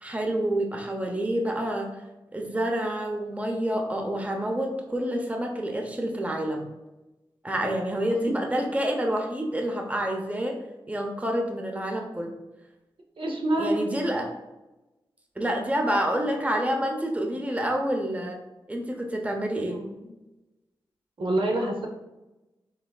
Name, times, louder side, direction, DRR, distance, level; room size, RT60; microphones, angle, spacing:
voice 1, 0.0-1.9 2.3-6.6 7.4-10.6 10.9-12.3 13.6-14.3 15.4-18.4 18.7-19.8, right 1 dB, 15° right, 2 dB, 0.7 m, -28 dB
voice 2, 13.2-13.9 19.7-20.1 21.2-21.9, right 1 dB, 70° right, 1 dB, 0.8 m, -27 dB
5.7 x 3.5 x 2.3 m, 1.0 s
wide cardioid pair, 80°, 9 cm